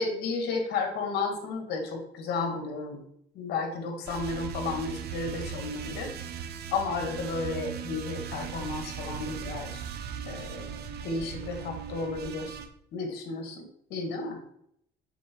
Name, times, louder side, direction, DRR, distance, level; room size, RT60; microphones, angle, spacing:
voice 1, 0.0-3.0 3.3-6.1 6.7-9.8 10.3-12.6 12.9-14.4, left 3 dB, 75° left, 4 dB, 2.2 m, -33 dB
sound 1, 4.1-12.7, right 7 dB, 70° right, 1.0 m, -38 dB
8.2 x 6.2 x 4.7 m, 0.72 s
cardioid pair, 110°, 17 cm